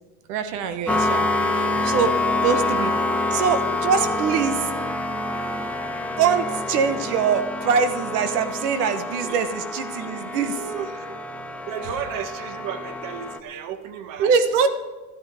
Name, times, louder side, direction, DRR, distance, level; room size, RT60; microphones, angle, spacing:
voice 1, 0.3-1.3 1.5-2.1 2.4-2.9 3.3-4.7 6.2-10.6 14.2-14.7, right 6 dB, 85° right, 9 dB, 1.3 m, -23 dB
sound 1, 0.9-13.4, left 2 dB, 5° left, 0.7 m, -27 dB
voice 2, 2.2-3.5 3.9-4.1 9.2-9.4 10.6-11.1 11.7-14.5, right 8 dB, 45° right, 9 dB, 1.4 m, -35 dB
13.5 x 13.0 x 4.9 m, 1.3 s
supercardioid pair, 135°, 45 cm